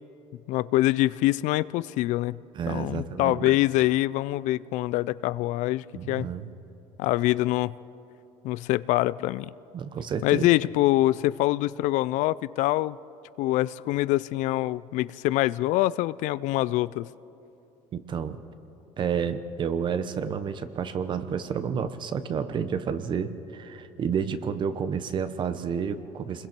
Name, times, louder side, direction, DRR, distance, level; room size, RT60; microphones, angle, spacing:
voice 1, 0.5-2.4 2.7-6.3 7.0-7.7 8.4-9.5 10.2-13.0 13.4-17.1, left 17 dB, 70° left, 19 dB, 0.4 m, -25 dB
voice 2, 2.5-3.6 5.9-6.5 9.7-10.5 17.9-18.4 19.0-26.5, right 7 dB, 35° right, 12 dB, 1.0 m, -30 dB
27.5 x 21.5 x 4.6 m, 2.8 s
cardioid pair, 140°, 13 cm